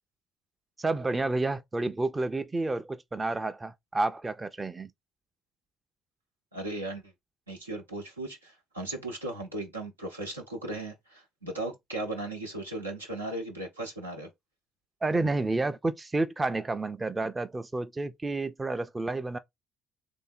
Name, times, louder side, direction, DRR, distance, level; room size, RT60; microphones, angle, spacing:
voice 1, 0.8-4.9 15.0-19.4, right 2 dB, 20° right, 0.5 m, -30 dB
voice 2, 6.5-7.1 7.5-14.3, right 2 dB, 90° right, 0.8 m, -37 dB
3.3 x 2.7 x 4.4 m
figure-of-eight pair, 50°, 0 cm